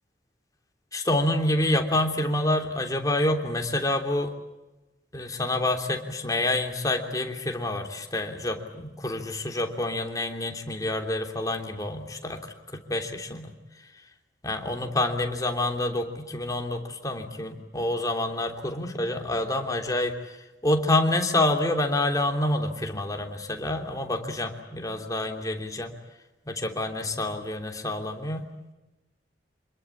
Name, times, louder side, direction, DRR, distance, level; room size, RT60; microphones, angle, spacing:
voice 1, 0.9-4.3 5.1-13.5 14.4-20.4 20.6-25.9 26.5-28.5, left 1 dB, 20° left, 4 dB, 3.2 m, -27 dB
27.5 x 21.5 x 8.7 m, 1.1 s
head